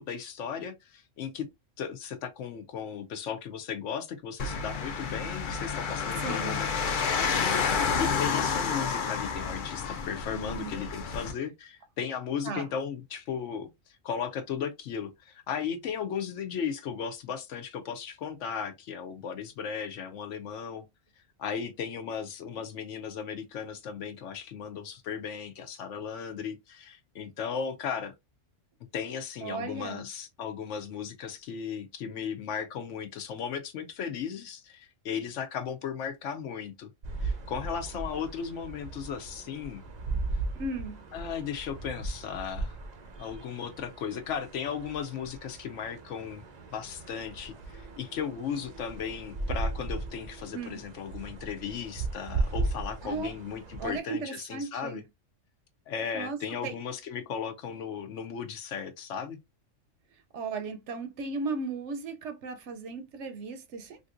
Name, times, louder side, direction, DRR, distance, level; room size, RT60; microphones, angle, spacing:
voice 1, 0.0-1.5 1.8-20.8 21.4-28.1 28.9-36.9 37.2-39.8 41.1-42.8 43.2-46.4 46.7-55.0 55.9-59.4, left 7 dB, 70° left, 0.9 m, -36 dB
sound 1, 4.4-11.3, left 5 dB, 55° left, 0.6 m, -30 dB
voice 2, 6.2-6.6 10.3-10.7 12.4-12.7 29.4-30.1 40.6-41.0 50.5-50.8 53.0-53.3 53.8-55.0 56.1-56.4 56.6-56.8 60.3-64.0, right 4 dB, 70° right, 0.8 m, -36 dB
sound 2, 37.0-54.0, right 3 dB, 50° right, 0.5 m, -37 dB
3.5 x 2.6 x 2.4 m
omnidirectional pair, 1.4 m